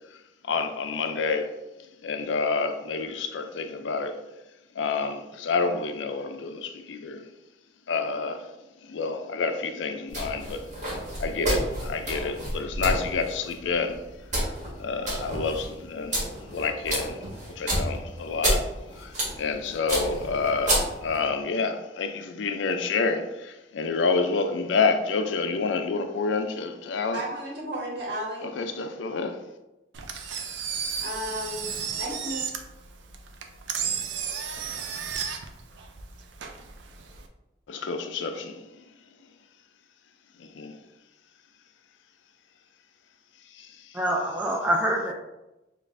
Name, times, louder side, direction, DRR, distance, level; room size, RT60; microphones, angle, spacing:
voice 1, 0.5-1.5 2.0-4.2 4.8-7.2 7.9-8.4 8.8-10.7 11.2-14.0 14.8-16.2 16.5-17.2 17.6-18.6 19.0-19.1 19.4-27.2 28.6-29.4 37.7-38.6 40.6-40.8 43.6-43.7, left 4 dB, 80° left, 0.4 m, -28 dB
sound 1, 10.1-21.3, right 1 dB, 40° right, 1.3 m, -30 dB
voice 2, 27.1-28.5 31.0-32.5, equal, 60° right, 1.2 m, -33 dB
Engine, 29.9-37.3, right 7 dB, 75° right, 0.4 m, -33 dB
voice 3, 43.9-45.1, equal, 10° right, 0.3 m, -25 dB
5.2 x 2.4 x 2.5 m
head